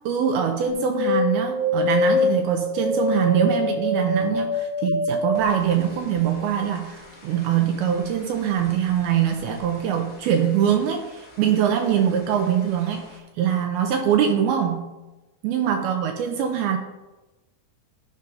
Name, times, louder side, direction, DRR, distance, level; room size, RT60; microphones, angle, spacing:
voice 1, 0.1-13.1 13.4-14.9 15.4-16.8, right 8 dB, 80° right, 4 dB, 2.4 m, -23 dB
sound 1, 0.7-10.1 10.3-11.2 11.6-12.5 12.9-13.0, left 3 dB, 15° left, 1.3 m, -26 dB
13.5 x 5.4 x 3.9 m, 1.1 s
omnidirectional pair, 4.9 m